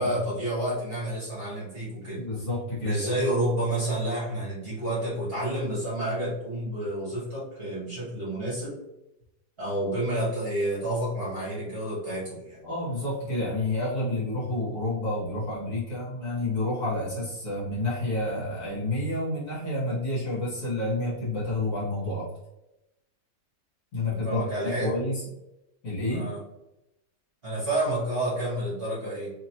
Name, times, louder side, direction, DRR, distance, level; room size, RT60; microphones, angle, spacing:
voice 1, 0.0-2.2 2.8-8.8 9.6-12.6 24.1-24.9 26.1-26.4 27.4-29.3, right 1 dB, 35° right, -9 dB, 1.4 m, -29 dB
voice 2, 2.2-3.3 12.6-22.3 23.9-25.2 25.8-26.3, left 2 dB, 50° left, -8 dB, 1.9 m, -29 dB
3.4 x 2.9 x 2.8 m, 0.90 s
omnidirectional pair, 1.9 m